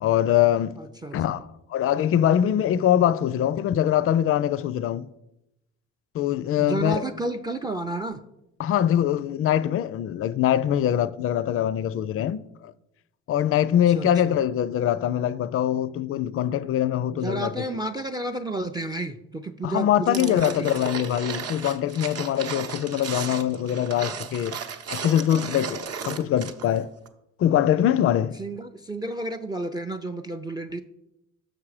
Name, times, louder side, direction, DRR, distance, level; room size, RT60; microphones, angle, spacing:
voice 1, 0.0-0.8 1.1-5.1 6.1-7.0 8.6-12.7 13.3-17.8 19.6-24.6 24.9-26.9 27.4-28.4, left 10 dB, 50° left, 0.4 m, -23 dB
voice 2, 0.8-1.2 6.6-8.2 13.9-14.4 17.1-20.9 26.1-26.3 28.4-30.8, right 2 dB, 15° right, 0.4 m, -31 dB
sound 1, 20.1-26.8 27.1-27.2, right 6 dB, 55° right, 0.8 m, -34 dB
6.4 x 6.0 x 4.8 m
cardioid pair, 90°, 30 cm